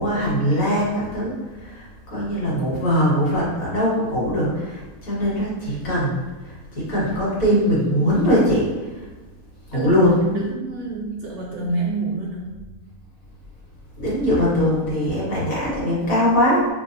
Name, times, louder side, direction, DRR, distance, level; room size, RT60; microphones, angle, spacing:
voice 1, 0.0-1.3 1.6-9.1 9.7-10.3 14.0-16.7, equal, 65° left, -7 dB, 2.0 m, -21 dB
voice 2, 10.2-12.6, right 2 dB, 60° right, -3 dB, 0.8 m, -27 dB
6.1 x 2.5 x 2.6 m, 1.2 s
omnidirectional pair, 1.6 m